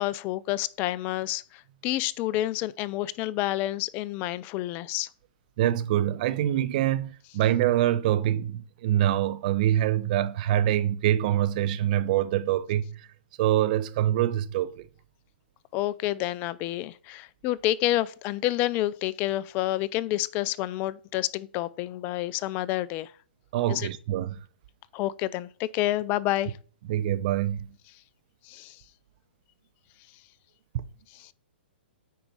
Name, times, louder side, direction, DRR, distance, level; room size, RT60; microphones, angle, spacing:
voice 1, 0.0-5.1 15.7-23.1 23.7-23.9 24.9-26.5 28.5-28.8 31.1-31.3, left 15 dB, 30° left, 0.5 m, -29 dB
voice 2, 5.6-13.1 13.4-14.9 23.5-24.4 26.9-27.8 30.7-30.8, right 12 dB, 45° right, 0.8 m, -25 dB
9.3 x 4.6 x 5.3 m
hypercardioid pair, 135°, 6 cm